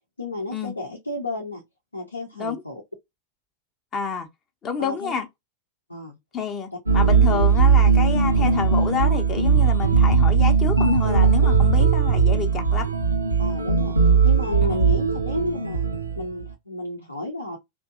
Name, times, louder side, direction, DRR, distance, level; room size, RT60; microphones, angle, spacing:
voice 1, 0.2-1.6 1.9-2.8 4.8-5.1 5.9-6.2 6.7-6.8 7.3-7.4 8.4-8.5 13.4-14.0 14.2-17.6, left 1 dB, 85° left, 0.7 m, -31 dB
voice 2, 3.9-4.3 4.6-5.3 6.3-12.9 14.6-14.8, left 6 dB, 30° left, 0.6 m, -29 dB
sound 1, 6.9-16.4, right 5 dB, 85° right, 0.5 m, -19 dB
2.6 x 2.2 x 2.5 m
figure-of-eight pair, 90°, 0 cm